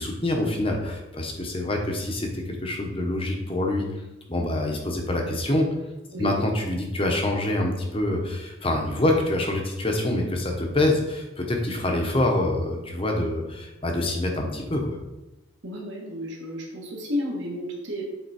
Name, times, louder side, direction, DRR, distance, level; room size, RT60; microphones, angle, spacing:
voice 1, 0.0-4.0 4.3-5.7 6.2-15.0, left 1 dB, 25° left, 2 dB, 0.9 m, -26 dB
voice 2, 15.6-18.0, left 1 dB, 60° right, -2 dB, 1.6 m, -32 dB
8.1 x 3.6 x 4.3 m, 1.0 s
head